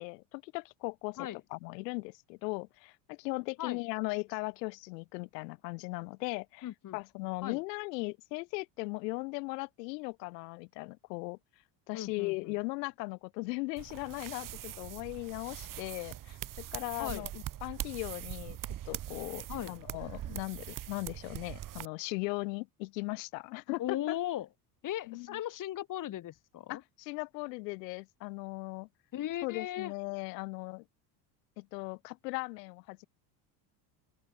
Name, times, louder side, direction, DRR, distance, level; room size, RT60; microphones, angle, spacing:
voice 1, 0.0-11.4 11.9-18.6 18.9-24.2 25.1-25.4 26.7-28.9 29.4-30.8 31.6-33.1, left 27 dB, 90° left, 4.5 m, -38 dB
voice 2, 6.6-7.0 7.4-7.6 11.9-12.5 17.0-17.3 19.5-19.7 23.8-24.5 24.8-26.8 29.1-29.9, left 13 dB, 40° left, 2.6 m, -37 dB
sound 1, 13.8-21.8, right 12 dB, 40° right, 3.0 m, -42 dB
open air
cardioid pair, 135°, 48 cm